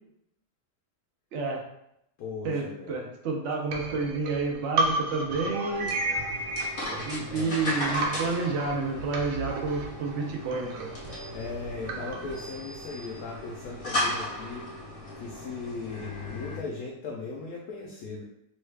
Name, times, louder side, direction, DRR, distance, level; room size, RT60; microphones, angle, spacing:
voice 1, 1.3-1.6 2.4-5.9 7.0-10.7, right 3 dB, 65° right, 1 dB, 0.7 m, -30 dB
voice 2, 2.2-3.0 7.3-7.8 11.3-14.6 15.1-18.2, left 4 dB, 70° left, -2 dB, 0.9 m, -38 dB
sound 1, 3.7-7.7 8.0-12.4, right 2 dB, 85° right, 1.2 m, -33 dB
sound 2, 5.7-16.6, left 1 dB, 45° left, 0.7 m, -36 dB
3.1 x 2.3 x 3.2 m, 0.78 s
omnidirectional pair, 1.8 m